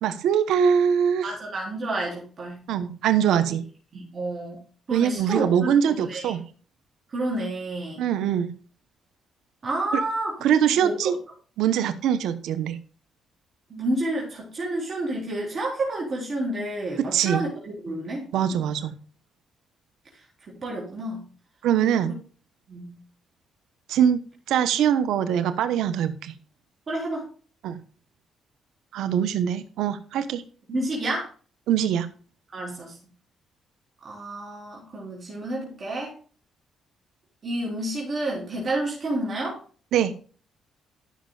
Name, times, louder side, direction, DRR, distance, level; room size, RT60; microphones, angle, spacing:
voice 1, 0.0-1.3 2.7-3.6 4.9-6.4 8.0-8.5 9.9-10.0 10.4-11.1 11.6-12.8 17.0-17.5 18.3-19.0 21.6-22.1 23.9-24.2 24.5-26.3 27.6-27.8 28.9-30.4 31.7-32.1 39.9-40.1, right 9 dB, 85° right, 11 dB, 0.9 m, -23 dB
voice 2, 1.2-2.6 3.5-3.6 3.9-4.6 4.9-6.3 7.1-8.0 9.6-10.4 10.8-11.0 13.7-18.7 20.5-21.3 22.7-22.9 26.9-27.2 30.7-31.3 32.5-33.0 34.0-36.1 37.4-39.6, right 1 dB, 40° right, -3 dB, 3.7 m, -30 dB
13.5 x 6.5 x 2.4 m, 0.40 s
cardioid pair, 90°, 0 cm